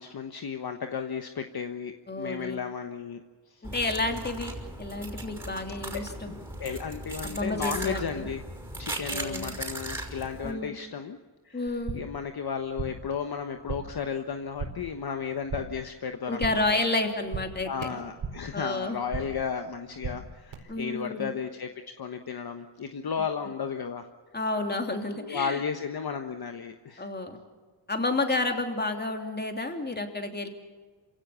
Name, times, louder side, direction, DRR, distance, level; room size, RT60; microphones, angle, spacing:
voice 1, 0.0-3.2 3.5-3.7 5.9-6.0 6.3-6.4 6.6-8.4 8.8-11.2 11.4-16.8 17.6-21.7 22.0-24.1 25.1-27.1, left 6 dB, 50° left, 6 dB, 1.3 m, -34 dB
voice 2, 2.1-2.6 3.6-4.5 4.8-6.3 7.2-8.2 9.1-9.5 10.4-10.7 11.5-12.0 16.3-17.7 18.5-19.0 20.7-21.3 24.3-25.6 27.0-27.4 27.9-30.5, left 2 dB, 20° left, 4 dB, 3.0 m, -30 dB
sound 1, 3.6-10.5, right 1 dB, 5° right, 5.5 m, -38 dB
sound 2, 11.7-12.2 12.5-13.1 13.4-14.0 14.3-14.9 15.2-15.9 16.1-16.8 17.0-18.5 18.8-19.5 19.7-20.5, right 5 dB, 70° right, 4.6 m, -38 dB
27.5 x 17.0 x 7.0 m, 1.4 s
cardioid pair, 95°, 48 cm